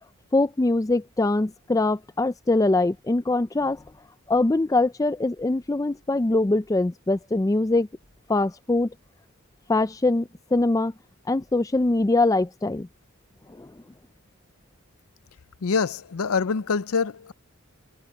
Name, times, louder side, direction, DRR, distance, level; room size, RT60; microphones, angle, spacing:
voice 1, 0.3-3.8 4.3-7.9 8.3-8.9 9.7-10.9 11.3-12.9 13.6-13.7, left 2 dB, 15° left, 0.3 m, -23 dB
voice 2, 15.6-17.3, left 5 dB, 75° left, 0.5 m, -25 dB
head